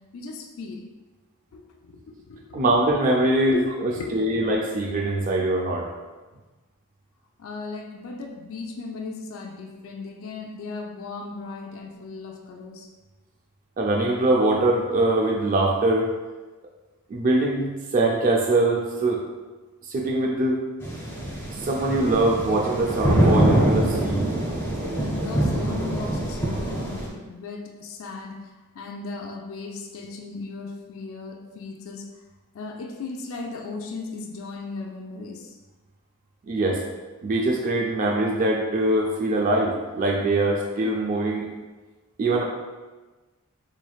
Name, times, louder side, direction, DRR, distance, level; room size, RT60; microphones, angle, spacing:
voice 1, 0.1-0.8 1.5-2.6 3.5-4.3 7.4-12.9 25.0-28.4 28.7-32.1 32.5-35.5, left 3 dB, 65° left, 1 dB, 0.4 m, -36 dB
voice 2, 2.5-5.9 13.8-16.1 17.1-19.2 19.9-20.6 21.6-24.3 36.5-36.8 37.2-41.5 42.2-42.4, right 2 dB, 40° right, -1 dB, 0.4 m, -23 dB
sound 1, 20.8-27.1, right 1 dB, 10° left, 0.7 m, -24 dB
4.0 x 3.2 x 2.3 m, 1.2 s
head